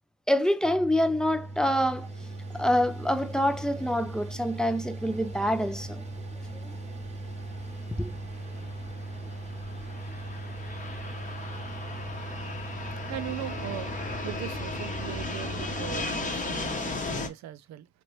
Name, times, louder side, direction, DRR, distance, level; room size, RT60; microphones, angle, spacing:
voice 1, 0.3-2.1 2.5-6.1 6.6-6.7 8.0-8.1, equal, ahead, 0.3 m, -26 dB
Mechanical fan, 0.6-16.0, right 2 dB, 20° right, 0.8 m, -39 dB
Fixed-wing aircraft airplane, 5.1-17.3, left 3 dB, 25° left, 0.8 m, -37 dB
voice 2, 13.1-13.9 14.2-17.9, right 13 dB, 65° right, 0.5 m, -39 dB
3.0 x 2.5 x 3.0 m
cardioid pair, 90°, 30 cm